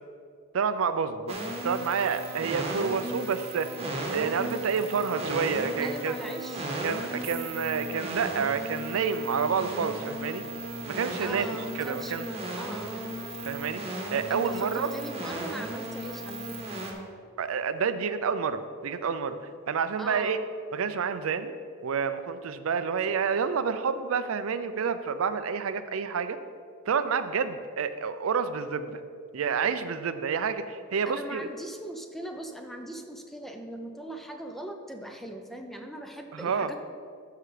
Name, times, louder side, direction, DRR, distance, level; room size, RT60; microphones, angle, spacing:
voice 1, 0.5-1.4 1.6-3.7 4.1-6.2 6.8-10.4 10.8-11.5 11.7-12.3 13.5-13.8 14.1-14.9 17.4-19.4 19.7-20.4 20.7-21.5 21.8-26.4 26.9-29.0 29.3-31.5 36.3-36.7, right 6 dB, 85° right, 11 dB, 0.5 m, -29 dB
sound 1, 1.3-16.9, right 1 dB, 30° right, 1.2 m, -36 dB
voice 2, 5.8-6.7 11.2-13.2 14.3-16.8 20.0-20.5 31.1-36.8, right 1 dB, ahead, 4 dB, 0.6 m, -40 dB
12.5 x 5.7 x 3.3 m, 2.2 s
head